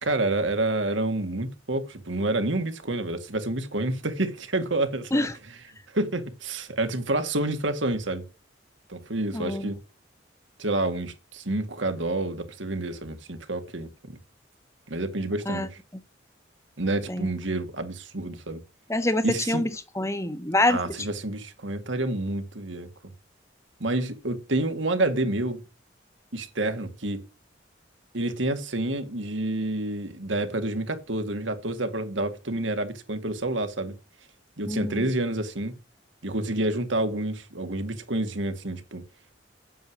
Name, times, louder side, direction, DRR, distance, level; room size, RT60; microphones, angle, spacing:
voice 1, 0.0-5.6 5.9-8.3 8.9-9.8 10.6-14.2 14.9-15.8 16.8-18.6 19.2-19.6 20.7-22.9 23.8-25.6 26.3-27.2 28.1-33.9 34.6-35.7 36.2-39.0, right 2 dB, 85° right, 2.1 m, -28 dB
voice 2, 9.3-9.7 15.5-15.7 17.1-17.3 18.9-19.7 20.0-20.8 34.7-35.0, left 1 dB, 15° left, 1.0 m, -25 dB
9.3 x 8.0 x 6.1 m
head